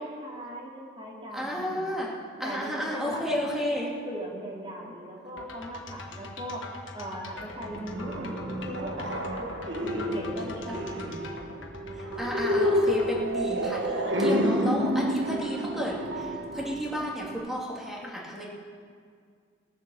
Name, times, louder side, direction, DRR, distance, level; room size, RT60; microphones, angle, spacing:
voice 1, 0.0-1.8 2.4-3.2 3.8-6.7 6.9-11.3, equal, 25° right, -4 dB, 2.8 m, -39 dB
voice 2, 1.3-2.1 2.4-3.9 12.0-18.5, equal, ahead, -4 dB, 2.4 m, -32 dB
sound 1, 5.4-13.2, left 3 dB, 80° left, 1.3 m, -43 dB
sound 2, 7.6-17.4, equal, 65° right, 1.3 m, -29 dB
19.0 x 7.6 x 7.0 m, 2.1 s
head